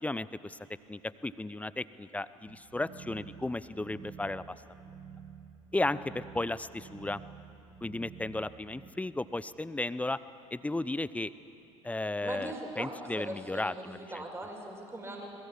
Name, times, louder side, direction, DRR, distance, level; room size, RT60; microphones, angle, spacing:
voice 1, 0.0-0.6 0.9-4.6 5.7-7.2 7.8-10.2 10.5-11.3 11.8-14.2, left 2 dB, 10° left, 16 dB, 0.7 m, -34 dB
sound 1, 2.5-8.9, right 7 dB, 45° right, 1.9 m, -50 dB
voice 2, 12.2-15.3, right 1 dB, 15° right, 1 dB, 5.2 m, -40 dB
29.0 x 22.0 x 7.4 m, 2.9 s
figure-of-eight pair, 65°, 17 cm